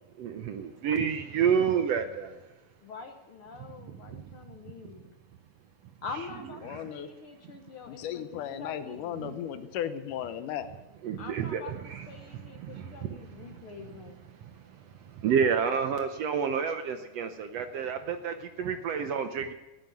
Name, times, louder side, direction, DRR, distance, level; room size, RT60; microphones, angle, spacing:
voice 1, 0.2-2.4 3.9-4.2 4.7-4.8 6.7-6.9 9.2-9.4 11.0-14.0 14.4-19.5, right 7 dB, 70° right, 8 dB, 1.6 m, -30 dB
voice 2, 2.8-5.0 6.0-9.1 11.2-11.7 12.1-14.2, left 4 dB, 60° left, 5 dB, 1.4 m, -44 dB
voice 3, 6.6-7.1 7.9-10.7, left 10 dB, 80° left, 10 dB, 2.5 m, -35 dB
17.0 x 9.0 x 9.2 m, 1.1 s
omnidirectional pair, 3.6 m